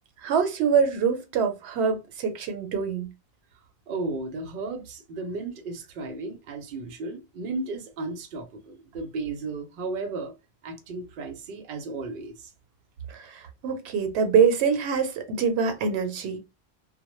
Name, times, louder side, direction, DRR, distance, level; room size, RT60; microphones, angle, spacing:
voice 1, 0.2-3.1 13.6-16.4, right 6 dB, 90° right, 0.9 m, -24 dB
voice 2, 3.9-10.3 10.6-12.5, right 3 dB, 60° right, 0.7 m, -34 dB
2.1 x 2.1 x 3.0 m
omnidirectional pair, 1.1 m